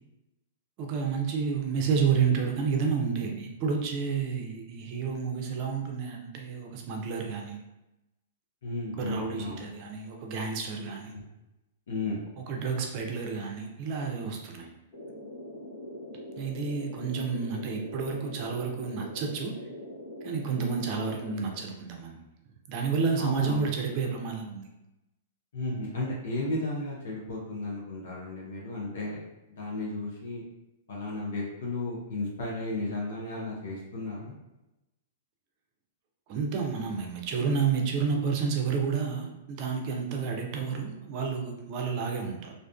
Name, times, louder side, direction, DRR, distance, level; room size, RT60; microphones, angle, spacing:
voice 1, 0.8-7.6 9.0-11.1 12.4-14.7 16.4-19.5 20.2-22.2 22.7-24.6 36.3-42.5, right 5 dB, 45° right, 2 dB, 0.5 m, -30 dB
voice 2, 8.6-9.7 11.1-11.2 11.9-12.2 23.2-23.7 25.5-29.2 29.5-30.4 30.9-34.3, left 2 dB, 70° left, -4 dB, 0.7 m, -34 dB
sound 1, 14.9-21.6, left 1 dB, 45° left, 0.9 m, -43 dB
2.5 x 2.3 x 2.3 m, 0.96 s
hypercardioid pair, 110°, 0 cm